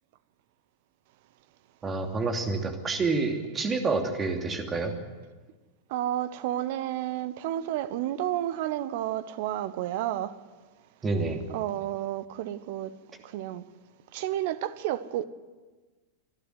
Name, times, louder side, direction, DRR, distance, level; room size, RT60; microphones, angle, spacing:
voice 1, 1.8-4.9 11.0-11.4, right 3 dB, 20° right, 2.8 m, -28 dB
voice 2, 5.9-10.4 11.5-12.9 13.2-13.6 14.1-15.2, right 12 dB, 50° right, 1.0 m, -31 dB
26.0 x 12.0 x 9.5 m
figure-of-eight pair, 90°, 0 cm